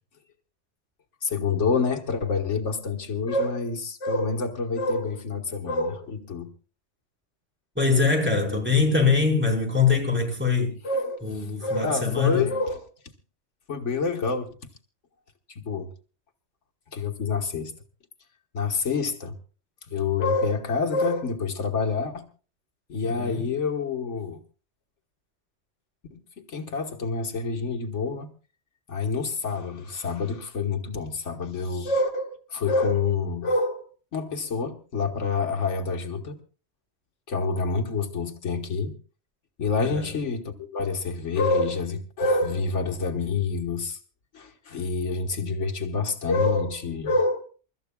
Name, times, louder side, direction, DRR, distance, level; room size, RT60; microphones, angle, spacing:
voice 1, 1.2-6.5 10.8-12.8 13.7-14.5 15.5-15.9 16.9-17.7 18.5-19.3 19.9-22.3 22.9-24.4 26.1-26.2 26.5-28.3 28.9-36.4 37.3-38.9 39.6-44.0 44.3-47.4, left 4 dB, 80° left, 1.7 m, -27 dB
voice 2, 7.7-10.8 11.2-12.5 23.0-23.5 39.8-40.1, left 4 dB, 10° right, 5.1 m, -23 dB
28.5 x 13.5 x 2.3 m
omnidirectional pair, 1.2 m